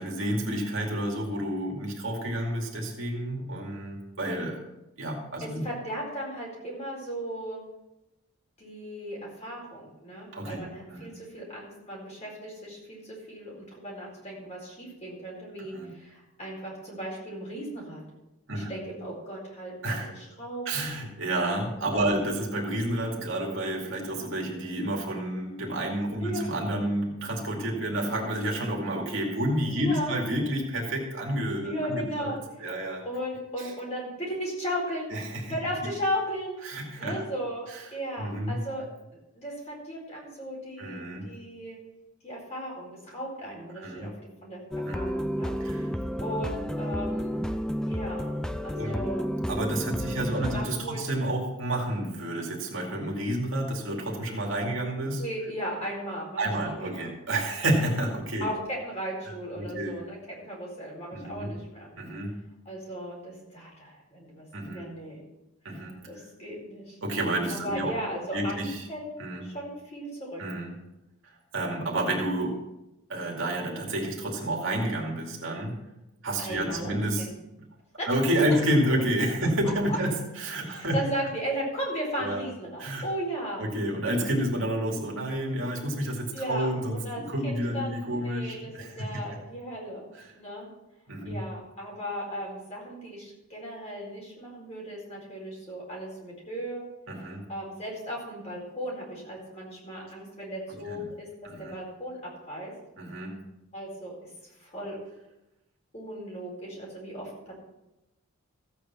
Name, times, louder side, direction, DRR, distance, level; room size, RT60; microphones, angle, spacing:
voice 1, 0.0-4.6 5.0-5.7 10.3-10.6 10.9-11.1 15.7-15.9 18.5-18.7 19.8-20.1 20.7-32.3 32.6-33.0 33.6-33.7 35.1-35.5 36.6-37.2 37.7-37.8 38.2-38.6 40.8-41.3 43.7-44.1 44.8-45.1 45.6-45.9 48.7-49.1 49.5-55.2 56.4-58.5 59.6-60.0 61.1-61.5 62.0-62.4 64.5-64.8 65.6-66.0 67.0-67.9 68.3-68.9 69.2-69.5 70.4-70.8 71.2-72.6 73.1-75.8 76.2-77.3 78.1-81.0 82.2-82.4 82.8-83.0 83.6-89.2 90.2-90.3 91.1-91.5 97.1-97.4 100.9-101.0 101.4-101.7 103.0-103.4, right 1 dB, 60° right, -1 dB, 2.4 m, -30 dB
voice 2, 5.4-7.6 8.6-18.0 18.5-20.9 21.9-22.2 26.2-26.5 29.8-30.2 31.6-32.4 33.0-35.1 35.5-36.6 37.0-38.8 39.4-41.8 42.2-44.1 44.4-44.6 44.9-45.5 46.2-47.4 47.8-48.3 48.6-49.3 50.0-51.1 55.2-57.1 58.4-61.9 62.6-65.2 66.1-67.0 67.5-69.1 69.4-70.4 76.4-77.3 78.0-78.1 79.9-80.0 80.7-83.6 86.3-90.7 91.2-96.8 97.5-101.3 101.6-102.2 102.5-102.7 103.7-104.1 104.6-105.0 105.9-107.5, equal, 30° left, -4 dB, 4.5 m, -36 dB
sound 1, 44.7-50.7, equal, 5° left, 0.4 m, -31 dB
14.5 x 8.5 x 4.4 m, 0.94 s
head